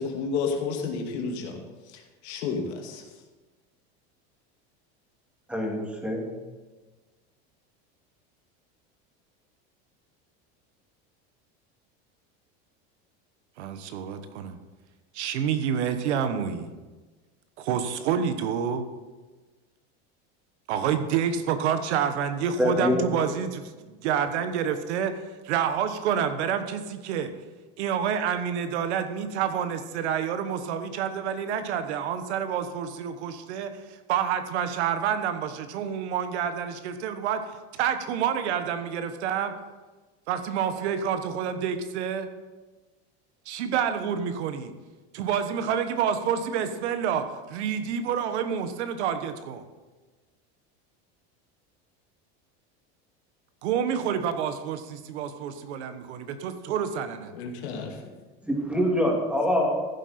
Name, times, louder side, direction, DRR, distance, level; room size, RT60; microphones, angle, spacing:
voice 1, 0.0-1.6 1.9-3.1 57.3-58.0, left 5 dB, 80° left, 2 dB, 2.3 m, -31 dB
voice 2, 5.5-6.3 22.6-23.0 58.5-59.8, left 1 dB, 5° right, -1 dB, 2.5 m, -25 dB
voice 3, 13.6-14.6 15.1-16.7 17.6-18.8 20.7-27.3 27.8-39.5 40.3-42.3 43.4-44.7 45.1-49.6 53.6-57.3, right 8 dB, 85° right, 9 dB, 1.3 m, -28 dB
14.5 x 7.7 x 4.3 m, 1.3 s
supercardioid pair, 130°, 33 cm